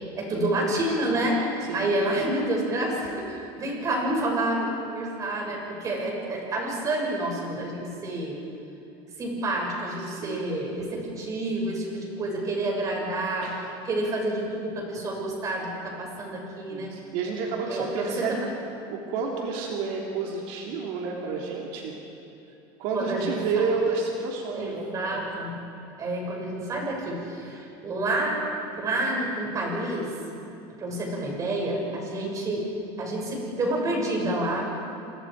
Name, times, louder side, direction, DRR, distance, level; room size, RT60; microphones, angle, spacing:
voice 1, 0.1-8.4 9.2-13.5 13.8-16.9 17.7-18.4 22.9-23.8 24.5-25.5 26.0-28.4 28.8-30.1 30.8-32.7 33.0-34.6, right 1 dB, 30° right, -1 dB, 6.6 m, -29 dB
voice 2, 10.0-10.6 13.4-13.6 16.7-18.5 18.9-21.9 22.8-24.9, right 4 dB, 70° right, -1 dB, 3.4 m, -30 dB
29.5 x 27.0 x 5.0 m, 2.9 s
cardioid pair, 150°, 12 cm